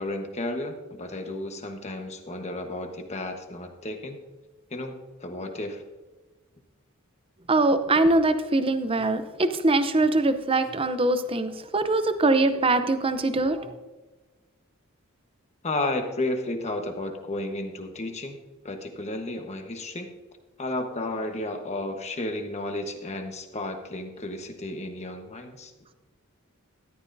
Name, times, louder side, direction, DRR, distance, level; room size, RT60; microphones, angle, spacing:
voice 1, 0.0-4.2 4.7-5.8 15.6-18.4 18.6-20.1 20.6-25.7, left 2 dB, 30° left, 5 dB, 1.2 m, -32 dB
voice 2, 7.5-13.7, right 2 dB, 25° right, 10 dB, 0.7 m, -23 dB
13.5 x 11.5 x 2.7 m, 1.2 s
head